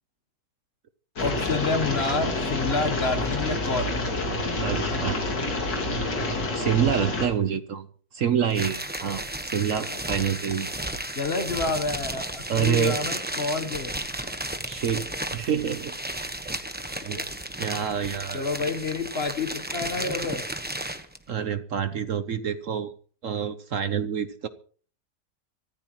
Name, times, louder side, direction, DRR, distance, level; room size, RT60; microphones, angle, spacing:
sound 1, 1.2-7.3, left 2 dB, 85° left, 3.1 m, -28 dB
voice 1, 1.2-3.9 9.8-10.0 11.1-14.0 17.1-17.2 18.3-20.4, left 3 dB, 40° left, 8 dB, 1.3 m, -29 dB
voice 2, 4.6-5.2 6.2-7.9 8.1-10.7 12.5-13.0 13.5-13.7 14.6-15.9 16.4-16.5 16.9-17.2 17.5-18.5 21.3-22.9 23.2-24.5, right 8 dB, 55° right, 11 dB, 1.1 m, -27 dB
sound 2, 8.5-21.2, right 1 dB, 5° right, 0.9 m, -33 dB
24.5 x 14.5 x 3.1 m, 0.43 s
omnidirectional pair, 1.8 m